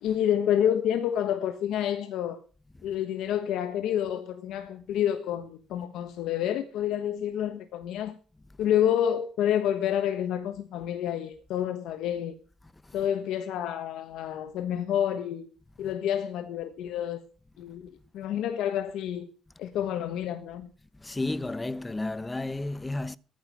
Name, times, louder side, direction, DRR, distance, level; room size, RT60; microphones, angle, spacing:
voice 1, 0.0-2.4 2.8-8.2 8.6-12.4 12.9-15.5 15.8-17.2 17.6-20.7, left 10 dB, 85° left, 1.2 m, -29 dB
voice 2, 21.0-23.2, left 2 dB, 15° left, 0.9 m, -32 dB
13.5 x 9.7 x 6.1 m
cardioid pair, 90°, 0 cm